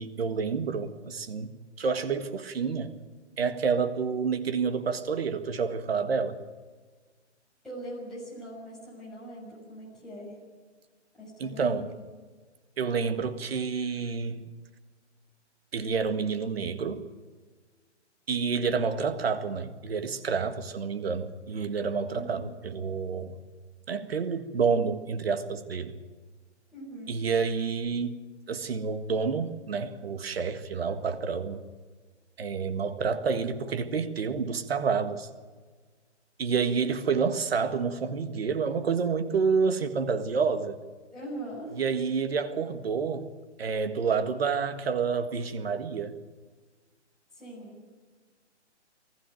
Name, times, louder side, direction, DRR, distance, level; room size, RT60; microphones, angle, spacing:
voice 1, 0.0-1.5 1.8-3.0 3.4-6.4 11.4-11.9 12.8-14.5 15.7-17.0 18.3-23.4 23.9-26.0 27.1-28.2 28.5-31.6 32.4-35.3 36.4-40.8 41.8-43.3 43.6-46.2, right 5 dB, 55° right, 9 dB, 1.8 m, -29 dB
voice 2, 7.6-10.4 11.2-11.9 22.1-22.5 26.7-27.2 41.1-41.8 47.3-47.8, right 1 dB, ahead, -9 dB, 6.5 m, -42 dB
20.5 x 14.5 x 9.3 m, 1.4 s
hypercardioid pair, 165°, 35 cm